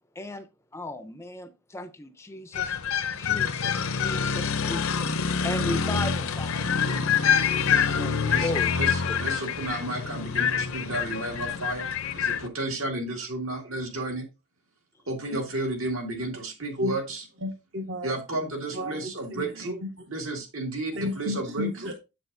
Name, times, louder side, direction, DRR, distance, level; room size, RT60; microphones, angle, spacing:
voice 1, 0.2-0.5 0.7-2.8 3.2-5.2 5.4-6.7 7.1-9.4, left 1 dB, 10° left, 10 dB, 0.4 m, -36 dB
sound 1, 2.5-12.5, left 7 dB, 75° left, 0.6 m, -26 dB
voice 2, 8.3-11.9 12.2-14.3 15.1-17.2 18.0-19.8 20.1-21.9, right 2 dB, 75° right, 2 dB, 1.8 m, -32 dB
voice 3, 17.4-18.2 18.7-19.9 20.9-21.9, left 2 dB, 55° right, 4 dB, 0.7 m, -33 dB
7.5 x 6.1 x 2.6 m, 0.26 s
head